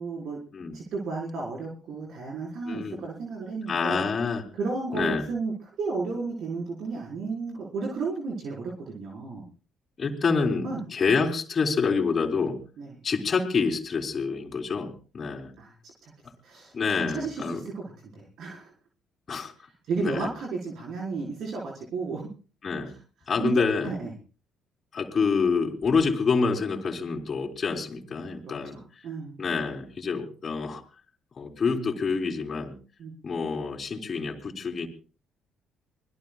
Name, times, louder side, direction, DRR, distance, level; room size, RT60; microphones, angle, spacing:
voice 1, 0.0-0.4 0.7-4.1 4.5-9.4 10.6-10.8 12.8-12.9 15.6-15.8 16.0-16.1 16.4-18.7 19.8-22.3 23.4-24.1 28.4-29.4 33.0-33.1, right 4 dB, 60° right, -1 dB, 4.8 m, -33 dB
voice 2, 2.7-3.0 3.7-4.4 4.9-5.2 10.0-12.6 13.0-15.5 16.7-17.6 19.3-19.5 20.0-20.3 22.6-22.9 23.3-23.9 24.9-28.8 29.4-30.8 31.4-32.7 33.2-34.9, left 5 dB, 40° left, -2 dB, 3.6 m, -27 dB
25.0 x 20.5 x 2.4 m, 0.37 s
hypercardioid pair, 50°, 0 cm